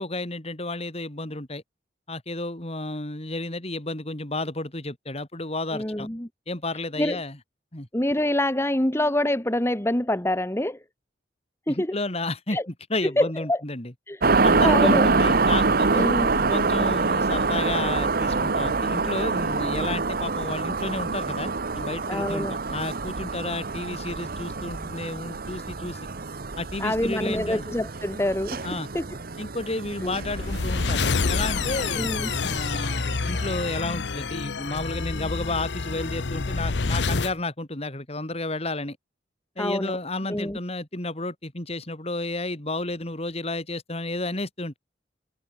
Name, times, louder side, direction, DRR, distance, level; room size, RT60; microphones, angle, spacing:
voice 1, 0.0-1.6 2.1-6.1 6.5-7.4 7.7-7.9 11.7-12.6 12.9-13.9 14.4-16.1 16.5-26.1 26.6-27.6 28.6-28.9 29.4-32.1 32.4-39.0 39.6-44.8, left 2 dB, 35° left, 3.5 m, -32 dB
voice 2, 5.7-6.3 7.0-7.2 7.9-10.8 11.7-12.0 12.5-12.6 13.2-13.6 14.1-15.1 16.0-16.3 22.1-22.6 26.8-28.7 28.9-29.1 30.0-30.1 32.0-32.3 39.6-40.0 40.3-40.6, left 1 dB, 15° left, 1.7 m, -26 dB
sound 1, 14.2-33.8, right 3 dB, 55° right, 1.1 m, -26 dB
sound 2, 29.9-37.4, left 4 dB, 75° left, 0.9 m, -28 dB
head